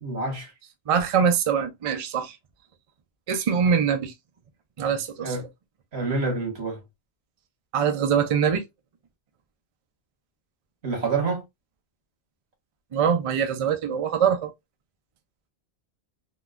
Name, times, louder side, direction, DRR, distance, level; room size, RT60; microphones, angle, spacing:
voice 1, 0.0-0.5 5.2-5.5 5.9-6.8 10.8-11.4, right 3 dB, 90° right, 1.5 m, -27 dB
voice 2, 0.9-2.4 3.3-4.1 4.8-5.5 7.7-8.6 12.9-14.5, right 7 dB, 45° right, 0.5 m, -23 dB
3.8 x 2.2 x 2.4 m
omnidirectional pair, 1.1 m